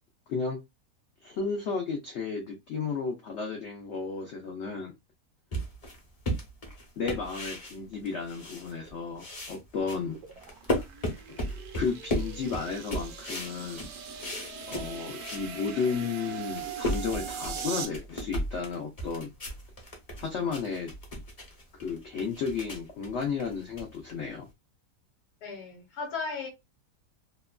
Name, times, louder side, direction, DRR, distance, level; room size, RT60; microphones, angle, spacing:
voice 1, 1.2-4.9 7.0-10.2 11.7-13.9 14.7-19.3 20.2-20.9 21.8-24.5, left 5 dB, 80° left, 0.6 m, -33 dB
Bare feet on wood floor, 5.5-8.9 9.2-15.5 15.9-16.0 16.4-24.5, equal, 40° left, 0.5 m, -35 dB
sound 1, 9.9-17.9, right 7 dB, 70° right, 1.0 m, -41 dB
voice 2, 25.4-26.5, left 4 dB, 65° left, 1.2 m, -36 dB
2.9 x 2.1 x 2.3 m
omnidirectional pair, 1.9 m